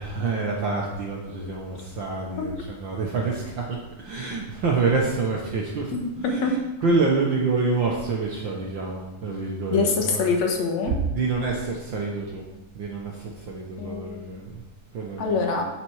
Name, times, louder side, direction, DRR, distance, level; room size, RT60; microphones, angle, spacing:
voice 1, 0.0-10.2 11.0-12.5 12.7-14.6 14.9-15.3, right 3 dB, 70° right, -1 dB, 1.1 m, -27 dB
voice 2, 5.9-6.5 9.7-10.9 13.8-14.3 15.2-15.7, left 4 dB, 65° left, 2 dB, 2.4 m, -24 dB
8.8 x 7.5 x 4.8 m, 1.0 s
omnidirectional pair, 3.6 m